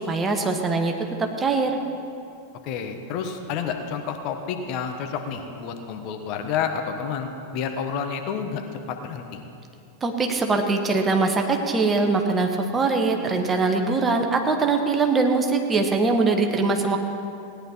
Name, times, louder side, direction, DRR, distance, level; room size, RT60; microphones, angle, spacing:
voice 1, 0.1-0.9 1.2-1.8 10.0-17.0, right 3 dB, 20° right, 4 dB, 1.2 m, -22 dB
voice 2, 2.6-9.4, left 6 dB, 40° left, 5 dB, 1.1 m, -30 dB
17.5 x 10.5 x 4.4 m, 2.5 s
figure-of-eight pair, 90°, 0 cm